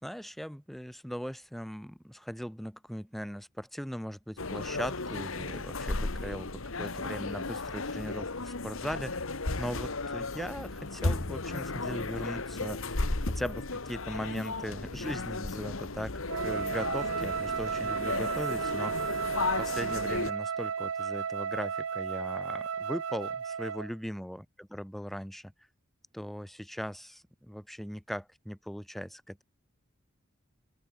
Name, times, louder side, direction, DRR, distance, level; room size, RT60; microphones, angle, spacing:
voice 1, 0.0-9.2 9.6-12.9 13.3-19.2 19.6-25.5 26.1-29.4, equal, ahead, 1.6 m, -39 dB
sound 1, 4.4-20.3, left 3 dB, 75° left, 1.8 m, -34 dB
Wind instrument woodwind instrument, 16.3-23.9, right 6 dB, 80° right, 0.7 m, -33 dB
open air
head